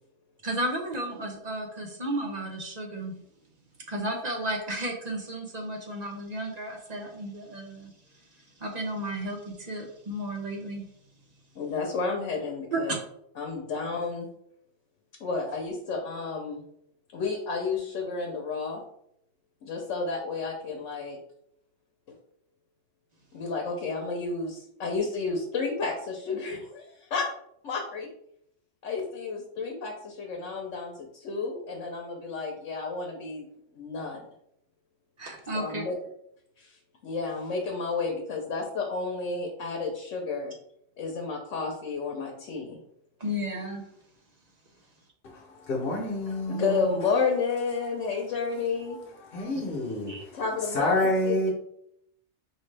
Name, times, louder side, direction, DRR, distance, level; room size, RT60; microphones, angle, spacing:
voice 1, 0.4-3.1 3.9-10.8 12.7-13.0 35.2-35.8 43.2-43.8 50.1-50.2, right 1 dB, 40° right, 2 dB, 0.7 m, -33 dB
voice 2, 11.5-12.9 13.4-14.3 15.2-16.6 17.1-18.8 19.6-21.2 23.3-27.3 27.6-28.1 28.8-33.5 33.7-34.3 35.5-35.9 36.6-40.5 41.0-42.8 46.5-49.0 50.3-51.5, left 4 dB, 85° left, 1 dB, 1.1 m, -31 dB
voice 3, 45.7-46.6 49.3-50.1 50.7-51.5, left 1 dB, 55° left, -2 dB, 1.1 m, -27 dB
4.6 x 3.1 x 3.3 m, 0.72 s
omnidirectional pair, 1.2 m